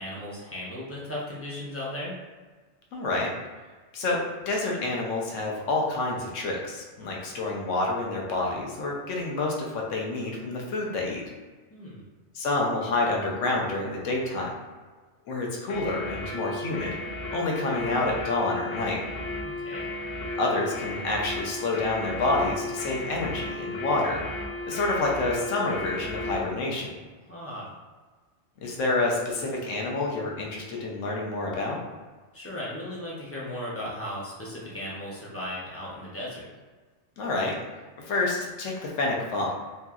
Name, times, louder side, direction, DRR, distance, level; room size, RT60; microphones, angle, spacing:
voice 1, 0.0-2.2 11.7-12.0 19.4-19.9 27.3-27.7 32.3-36.5, left 1 dB, 25° left, -6 dB, 0.3 m, -36 dB
voice 2, 2.9-3.3 3.9-11.2 12.3-14.5 15.3-17.0 17.3-19.0 20.3-24.2 24.7-26.9 28.6-31.8 37.2-37.5 38.0-39.5, left 2 dB, 85° left, -2 dB, 1.0 m, -28 dB
sound 1, 15.7-26.5, left 2 dB, 65° left, 0.7 m, -35 dB
3.1 x 2.7 x 2.3 m, 1.4 s
omnidirectional pair, 1.3 m